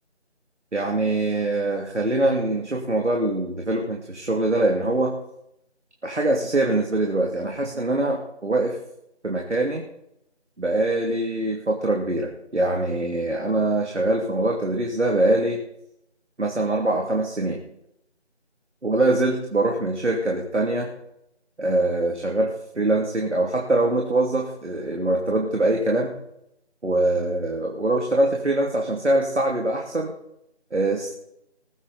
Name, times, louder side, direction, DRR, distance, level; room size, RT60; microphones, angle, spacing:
voice 1, 0.7-5.1 6.0-8.8 9.2-9.8 10.6-15.6 16.4-17.6 18.8-20.9 21.6-26.2 26.8-30.1 30.7-31.1, right 2 dB, 85° right, 0 dB, 2.9 m, -23 dB
21.0 x 8.9 x 4.2 m, 0.79 s
figure-of-eight pair, 180°, 34 cm